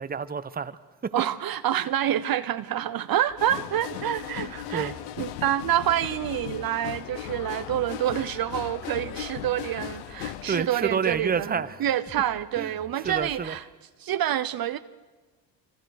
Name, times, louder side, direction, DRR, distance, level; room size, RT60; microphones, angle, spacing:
voice 1, 0.0-1.1 4.3-4.9 10.5-11.8 12.6-12.7 13.0-13.5, right 6 dB, 20° right, 1.1 m, -29 dB
voice 2, 1.1-13.6 14.0-14.8, right 11 dB, 45° right, 0.9 m, -27 dB
sound 1, 3.3-13.6, left 4 dB, 25° left, 2.1 m, -51 dB
sound 2, 3.4-10.6, left 12 dB, 80° left, 1.2 m, -37 dB
26.5 x 26.0 x 6.6 m
supercardioid pair, 80°, 50 cm